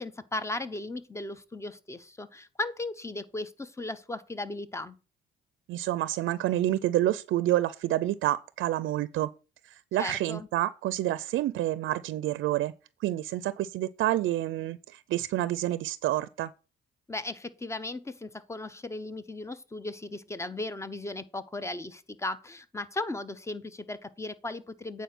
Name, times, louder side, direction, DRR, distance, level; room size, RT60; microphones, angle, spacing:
voice 1, 0.0-5.0 10.0-10.5 17.1-25.0, left 2 dB, 15° left, 0.8 m, -36 dB
voice 2, 5.7-9.3 9.6-12.7 13.0-16.5, right 14 dB, 80° right, 0.5 m, -28 dB
9.1 x 4.6 x 6.0 m
cardioid pair, 90°, 20 cm